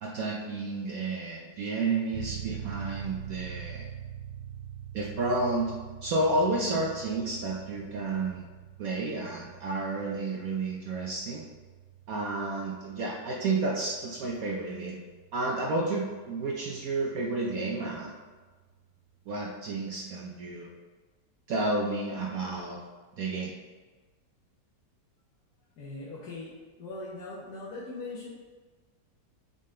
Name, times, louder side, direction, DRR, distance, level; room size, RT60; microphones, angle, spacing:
voice 1, 0.0-3.9 4.9-5.7 6.0-8.5 8.8-11.4 12.1-15.0 15.3-18.1 19.3-20.7 21.5-22.8 23.1-23.5, right 2 dB, 65° right, -2 dB, 1.0 m, -31 dB
sound 1, 2.1-16.5, right 10 dB, 85° right, 0.5 m, -44 dB
voice 2, 25.8-26.5 26.8-28.3, left 2 dB, 65° left, -7 dB, 1.6 m, -40 dB
7.7 x 3.9 x 3.8 m, 1.3 s
omnidirectional pair, 1.9 m